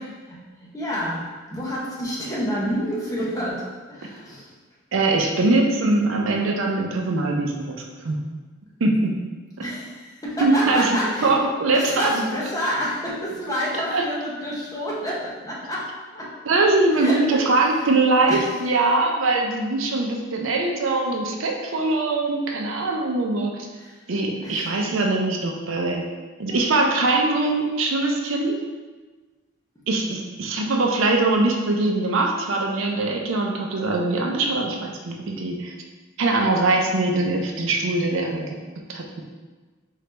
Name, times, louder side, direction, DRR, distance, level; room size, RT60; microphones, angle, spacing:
voice 1, 0.3-4.5 9.6-11.4 11.7-16.3 17.0-17.4 18.3-18.5 23.7-24.0 24.4-24.7 26.5-26.6, equal, 15° left, -6 dB, 0.8 m, -29 dB
voice 2, 4.9-8.2 8.8-9.1 9.6-9.7 10.4-10.9 11.2-12.2 13.9-14.1 16.5-23.7 24.1-26.0 26.4-28.6 29.9-35.7 36.2-38.5 38.9-39.2, right 2 dB, 75° right, 1 dB, 0.5 m, -22 dB
3.8 x 3.2 x 3.3 m, 1.3 s
head